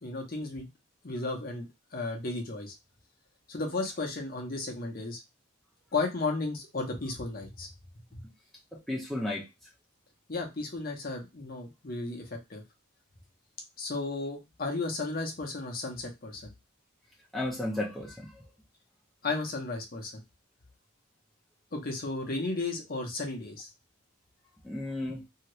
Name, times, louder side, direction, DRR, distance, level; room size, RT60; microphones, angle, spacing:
voice 1, 0.0-0.7 1.0-2.7 3.5-5.2 5.9-7.7 8.1-8.2 10.3-12.6 13.8-16.5 19.2-20.2 21.7-23.7, left 3 dB, 45° left, 2 dB, 0.8 m, -34 dB
voice 2, 8.7-9.4 17.3-18.3 24.6-25.2, left 1 dB, ahead, -4 dB, 0.6 m, -33 dB
2.8 x 2.4 x 3.0 m, 0.22 s
head